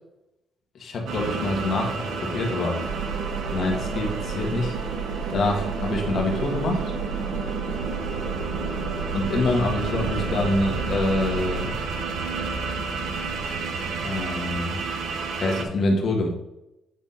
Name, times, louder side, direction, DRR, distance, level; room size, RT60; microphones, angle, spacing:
voice 1, 0.8-2.8 3.5-4.8 5.3-6.8 9.1-11.8 14.0-14.8 15.4-16.3, left 2 dB, 60° left, 0 dB, 1.7 m, -25 dB
sound 1, 1.1-15.6, right 4 dB, 75° right, 1.0 m, -30 dB
sound 2, 2.8-11.7, right 6 dB, 30° right, 2.2 m, -33 dB
8.3 x 3.7 x 4.2 m, 0.90 s
cardioid pair, 90°, 0 cm